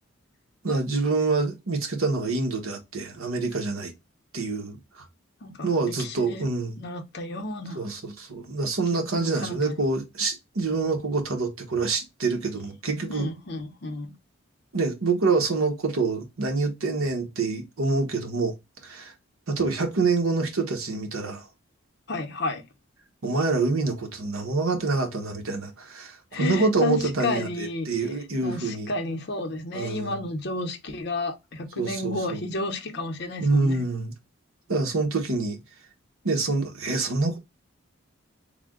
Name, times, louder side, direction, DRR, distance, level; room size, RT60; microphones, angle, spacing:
voice 1, 0.6-3.9 4.3-4.8 5.6-6.8 7.8-13.3 14.7-18.5 18.8-19.1 19.5-21.4 23.2-28.9 29.7-30.1 31.8-32.4 33.4-34.1 34.7-35.6 36.2-37.4, right 3 dB, 90° right, 0.9 m, -26 dB
voice 2, 5.4-6.4 6.8-7.9 8.9-9.8 13.1-14.1 22.1-22.6 26.3-27.9 28.4-33.8, left 2 dB, 50° left, 0.7 m, -32 dB
3.3 x 2.1 x 3.5 m
head